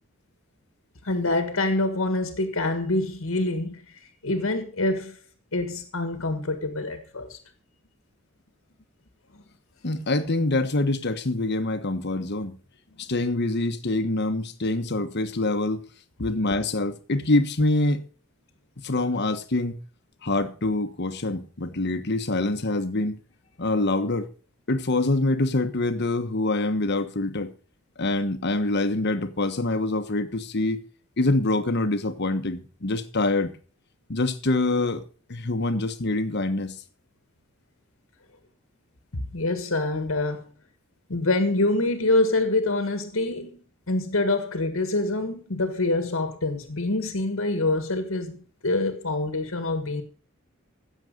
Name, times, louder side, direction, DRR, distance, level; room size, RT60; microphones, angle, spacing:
voice 1, 1.0-5.2 5.5-7.4 9.3-9.4 39.1-40.4 41.1-50.0, left 2 dB, 80° left, 1.6 m, -26 dB
voice 2, 9.8-12.6 13.0-15.8 16.2-18.0 18.8-19.8 20.2-23.2 23.6-24.3 24.7-27.5 28.0-30.8 31.2-33.5 34.1-35.0 35.3-36.7, left 2 dB, 55° left, 1.3 m, -25 dB
16.0 x 7.2 x 5.2 m
head